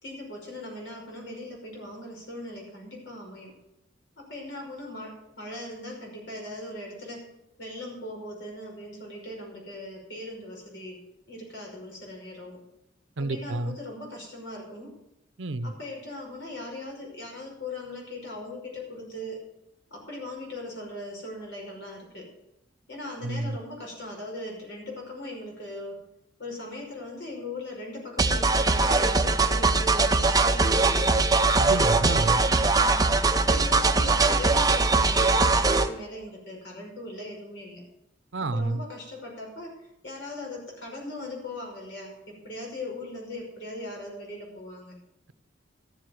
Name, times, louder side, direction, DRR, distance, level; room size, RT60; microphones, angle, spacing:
voice 1, 0.0-3.5 4.2-7.3 7.6-11.0 11.3-12.6 13.2-14.9 15.6-19.4 19.9-22.3 22.9-26.0 26.4-31.4 32.1-33.0 33.3-37.8 38.4-45.0, left 1 dB, 65° left, 5.5 m, -39 dB
voice 2, 13.2-13.8 15.4-15.7 23.2-23.6 31.6-32.4 38.3-38.8, right 2 dB, 65° right, 0.7 m, -29 dB
sound 1, 28.2-35.9, right 3 dB, 20° right, 0.7 m, -21 dB
13.5 x 7.8 x 7.9 m
head